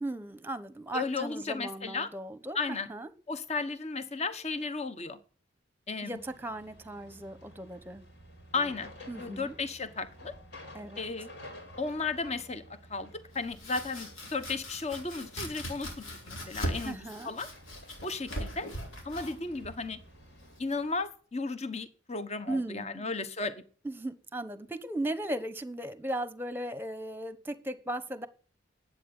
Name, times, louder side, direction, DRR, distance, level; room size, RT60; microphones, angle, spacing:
voice 1, 0.0-3.1 6.0-8.0 8.5-8.7 9.1-9.5 10.7-11.0 16.8-17.3 22.5-23.1 23.8-28.3, right 1 dB, 10° right, 1.0 m, -37 dB
voice 2, 0.9-2.1 2.5-2.9 3.3-5.2 5.9-6.1 8.5-10.3 11.0-11.3 11.8-12.6 12.9-17.0 17.2-17.5 18.0-18.7 19.0-20.0 20.6-23.5, left 3 dB, 35° left, 1.1 m, -34 dB
sound 1, 6.1-20.6, left 1 dB, 60° left, 5.5 m, -52 dB
Domestic sounds home sounds, 13.3-21.0, equal, 85° left, 4.6 m, -40 dB
11.5 x 8.8 x 9.7 m
head